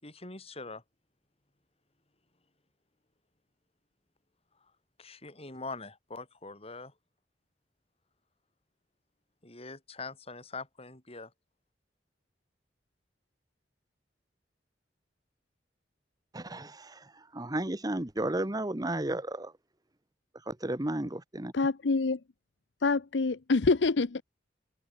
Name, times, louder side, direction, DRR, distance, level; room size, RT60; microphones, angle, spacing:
voice 1, 0.0-0.8 5.0-6.9 9.4-11.3, left 3 dB, 35° left, 7.8 m, -43 dB
voice 2, 16.3-17.0 17.3-19.5 20.5-21.5, right 1 dB, 20° right, 1.2 m, -33 dB
voice 3, 21.5-22.2 22.8-24.2, left 3 dB, 75° left, 0.7 m, -26 dB
head